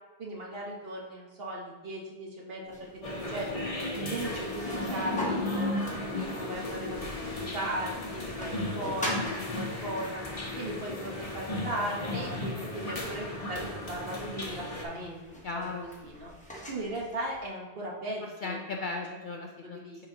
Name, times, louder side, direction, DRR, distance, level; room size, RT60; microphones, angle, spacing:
voice 1, 0.2-2.9 3.3-3.5 3.9-10.2 10.6-16.3 16.7-18.6 19.4-20.0, right 1 dB, 55° right, -2 dB, 1.3 m, -37 dB
sound 1, 2.7-17.5, equal, 5° left, 0.9 m, -44 dB
sound 2, 3.0-14.8, left 1 dB, 35° left, 0.9 m, -35 dB
voice 2, 15.4-15.9 18.2-20.1, left 3 dB, 60° left, 1 dB, 0.5 m, -37 dB
7.0 x 5.0 x 2.8 m, 1.2 s
omnidirectional pair, 1.2 m